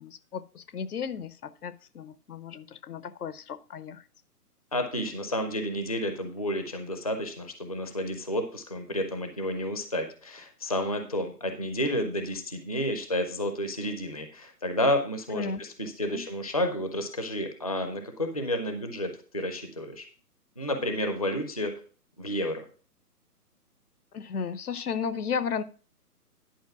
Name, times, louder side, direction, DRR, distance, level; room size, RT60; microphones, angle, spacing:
voice 1, 0.0-4.0 15.3-15.6 16.1-16.2 24.1-25.6, left 6 dB, 70° left, 16 dB, 0.8 m, -34 dB
voice 2, 4.7-20.1 20.6-21.7 22.2-22.7, left 1 dB, 25° left, 7 dB, 0.5 m, -31 dB
10.5 x 4.4 x 5.8 m, 0.40 s
hypercardioid pair, 160°, 48 cm